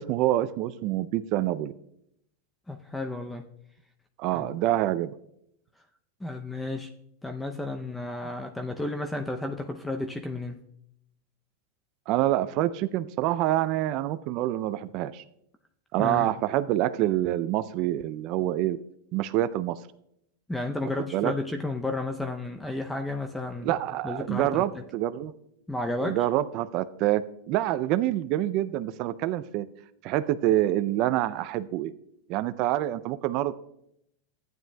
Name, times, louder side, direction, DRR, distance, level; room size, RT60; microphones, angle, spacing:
voice 1, 0.0-1.7 4.2-5.1 12.1-15.2 15.9-18.8 19.1-19.8 21.1-21.3 23.6-25.3 26.0-29.7 30.0-31.9 32.3-33.5, right 14 dB, 50° right, 12 dB, 0.4 m, -26 dB
voice 2, 2.7-3.5 4.3-4.6 6.2-6.9 7.2-10.6 16.0-16.3 20.5-23.8 24.0-24.8 25.7-26.2, left 2 dB, 5° left, 5 dB, 0.5 m, -32 dB
14.0 x 9.2 x 2.2 m, 0.76 s
hypercardioid pair, 120°, 0 cm